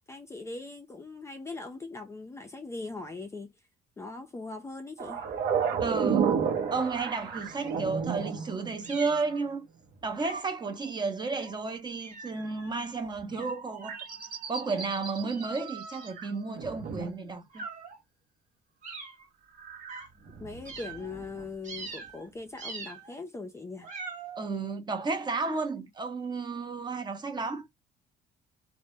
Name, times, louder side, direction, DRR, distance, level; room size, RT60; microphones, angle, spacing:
voice 1, 0.1-3.5 4.0-5.2 20.4-23.9, left 3 dB, 15° left, 0.4 m, -40 dB
sound 1, 5.0-9.1 13.2-13.5 13.8-16.3 16.6-17.1 19.6-21.5 21.8-21.9, right 7 dB, 65° right, 0.7 m, -32 dB
voice 2, 5.8-6.4 6.7-9.7 10.0-14.0 14.5-17.6 24.4-27.7, right 4 dB, 25° right, 0.6 m, -32 dB
sound 2, 8.8-9.5 10.2-10.6 11.3-11.6 12.0-12.7 13.3-16.8 17.5-18.0 18.8-19.3 19.9-20.1 20.6-21.2 21.6-22.3 22.6-23.1 23.8-24.5, right 4 dB, 45° right, 0.9 m, -44 dB
2.0 x 2.0 x 3.0 m
cardioid pair, 110°, 17 cm